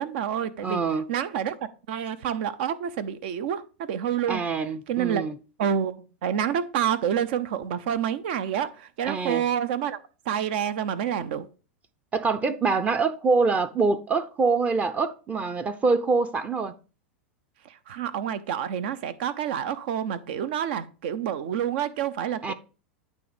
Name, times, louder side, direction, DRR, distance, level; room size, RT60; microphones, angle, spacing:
voice 1, 0.0-0.8 1.1-1.6 1.9-4.4 4.9-5.2 5.6-10.0 10.3-11.5 17.6-22.5, right 9 dB, 65° right, 0.7 m, -28 dB
voice 2, 0.6-1.1 4.3-5.3 9.0-9.4 12.1-16.7 22.4-22.5, right 4 dB, 20° right, 0.7 m, -25 dB
9.2 x 3.1 x 5.0 m
hypercardioid pair, 105°, 6 cm